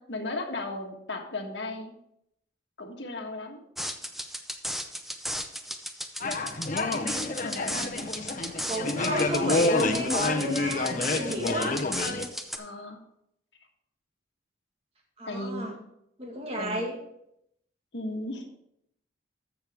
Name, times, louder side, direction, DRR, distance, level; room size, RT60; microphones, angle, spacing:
voice 1, 0.0-1.9 2.8-3.6 7.4-8.1 12.6-13.0 15.2-15.8 16.6-16.8 17.9-18.4, left 2 dB, 70° left, 2 dB, 1.5 m, -36 dB
sound 1, 3.8-12.6, equal, ahead, 0.6 m, -35 dB
sound 2, 6.2-12.2, left 2 dB, 45° left, 0.9 m, -28 dB
voice 2, 8.7-11.8 15.2-15.8 16.2-16.9, right 1 dB, 35° right, 0 dB, 2.0 m, -32 dB
14.0 x 6.2 x 3.6 m, 0.76 s
head